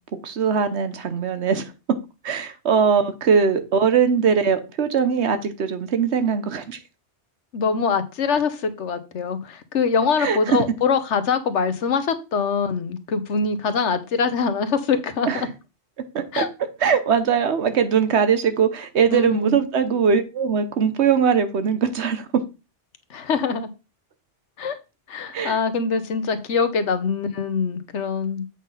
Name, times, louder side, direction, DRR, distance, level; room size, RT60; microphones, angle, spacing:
voice 1, 0.2-1.7 2.2-6.8 10.2-10.6 15.3-15.4 16.1-16.5 16.8-22.3 25.3-25.6, right 6 dB, 75° right, 1.2 m, -21 dB
voice 2, 7.5-15.5 16.3-16.5 19.1-19.6 23.1-23.7 24.6-24.8 25.1-28.5, left 5 dB, 85° left, 1.3 m, -23 dB
8.3 x 3.6 x 5.5 m
omnidirectional pair, 1.2 m